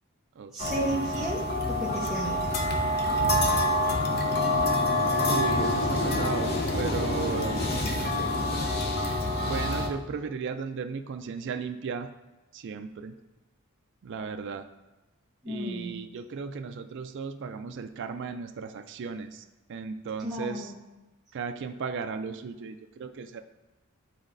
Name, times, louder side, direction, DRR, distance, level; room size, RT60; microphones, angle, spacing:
voice 1, 0.5-1.4 1.7-2.7 15.4-16.0 20.2-20.7, equal, ahead, -8 dB, 0.9 m, -33 dB
sound 1, 0.6-9.9, left 1 dB, 50° left, 0.7 m, -26 dB
voice 2, 5.3-7.6 9.4-12.1 12.5-13.1 14.0-14.7 15.5-19.4 19.7-20.7 21.3-23.4, right 5 dB, 60° right, 7 dB, 0.4 m, -35 dB
11.0 x 4.0 x 2.6 m, 1.1 s
head